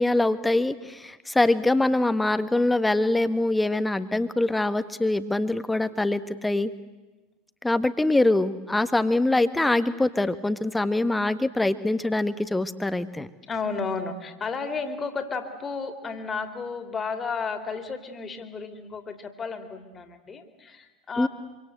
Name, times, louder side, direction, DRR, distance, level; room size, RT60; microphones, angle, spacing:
voice 1, 0.0-6.7 7.6-13.3 21.2-21.3, left 2 dB, 10° left, 12 dB, 1.5 m, -24 dB
voice 2, 13.4-21.3, left 4 dB, 25° left, 8 dB, 3.1 m, -33 dB
26.5 x 25.5 x 8.0 m, 1.2 s
figure-of-eight pair, 75°, 0 cm